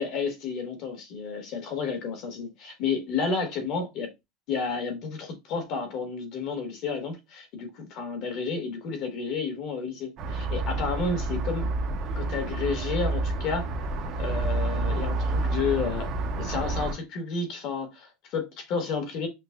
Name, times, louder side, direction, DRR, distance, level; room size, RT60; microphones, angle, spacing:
voice 1, 0.0-4.1 4.5-11.7 12.1-13.7 14.2-16.1 16.3-19.3, left 5 dB, 50° left, 1.1 m, -31 dB
sound 1, 10.2-16.9, right 2 dB, 40° right, 0.6 m, -29 dB
5.8 x 2.1 x 2.3 m
supercardioid pair, 150°, 0 cm